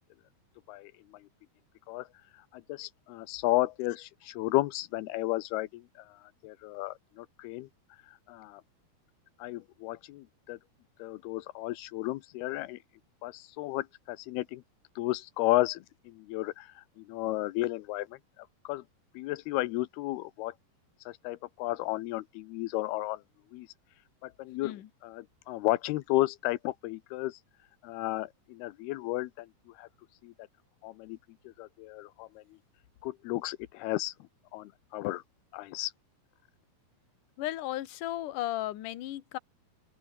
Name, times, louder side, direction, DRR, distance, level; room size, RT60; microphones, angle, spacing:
voice 1, 2.7-5.8 6.4-7.7 8.3-8.6 9.4-10.6 11.0-12.8 13.2-14.6 15.0-16.7 17.0-18.1 18.7-18.8 19.2-20.5 21.1-23.2 23.5-23.7 24.2-24.7 25.0-27.4 27.8-29.5 29.8-29.9 30.2-30.3 30.8-31.2 31.6-32.3 33.0-34.1 34.5-35.2 35.5-35.9, left 17 dB, 90° left, 2.8 m, -33 dB
voice 2, 37.4-39.4, left 14 dB, 65° left, 2.7 m, -35 dB
open air
omnidirectional pair, 4.5 m